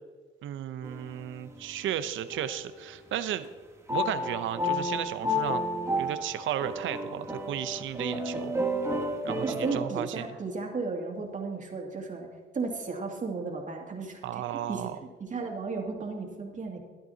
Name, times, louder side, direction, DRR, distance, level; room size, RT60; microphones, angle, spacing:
voice 1, 0.4-3.5 3.9-5.6 6.0-8.5 9.2-10.3 14.2-14.9, right 11 dB, 75° right, 11 dB, 0.7 m, -34 dB
sound 1, 0.8-1.6 2.3-2.9 3.9-9.8, left 1 dB, 15° right, 1.5 m, -32 dB
voice 2, 9.4-12.3 12.5-14.2 14.5-14.9 15.2-16.8, right 4 dB, 40° right, 1 dB, 2.4 m, -34 dB
13.5 x 11.5 x 2.8 m, 1.4 s
cardioid pair, 90°, 20 cm